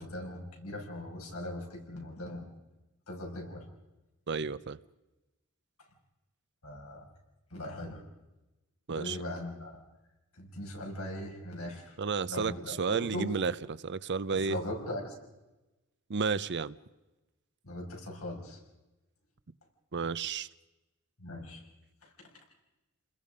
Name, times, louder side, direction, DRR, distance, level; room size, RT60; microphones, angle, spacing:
voice 1, 0.0-2.5 3.1-3.6 6.6-7.0 7.5-8.0 8.9-9.7 10.4-12.0 12.3-13.3 14.4-15.1 17.6-18.6 21.2-21.6 22.0-22.3, left 1 dB, 85° left, 0 dB, 6.5 m, -39 dB
voice 2, 4.3-4.8 8.9-9.2 12.0-14.6 16.1-16.8 19.9-20.5, right 5 dB, 55° right, 16 dB, 0.7 m, -32 dB
29.5 x 21.0 x 5.2 m, 1.1 s
head